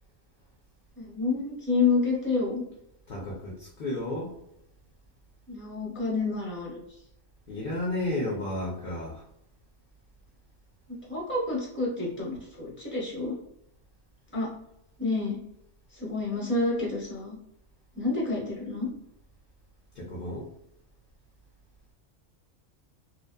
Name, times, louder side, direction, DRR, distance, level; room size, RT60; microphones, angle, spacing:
voice 1, 1.0-2.6 5.5-6.8 10.9-13.4 14.3-14.5 15.0-15.4 15.9-17.4 17.9-18.9, left 3 dB, 10° left, -5 dB, 0.8 m, -29 dB
voice 2, 3.1-4.3 7.5-9.3 19.9-20.5, left 1 dB, 55° left, -3 dB, 0.6 m, -32 dB
2.7 x 2.2 x 2.2 m, 0.79 s
omnidirectional pair, 1.3 m